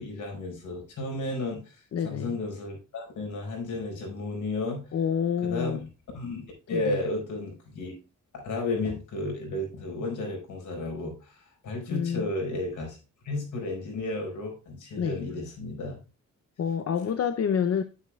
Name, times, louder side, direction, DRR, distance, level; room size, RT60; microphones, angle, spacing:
voice 1, 0.0-4.9 5.4-5.8 6.1-7.9 8.3-13.0 13.2-16.0, left 2 dB, 80° left, 5.3 m, -33 dB
voice 2, 1.9-2.4 4.9-5.9 6.7-7.0 11.9-12.3 15.0-15.2 16.6-17.8, left 7 dB, 55° left, 0.7 m, -28 dB
9.8 x 9.5 x 2.3 m
wide cardioid pair, 135°, 30 cm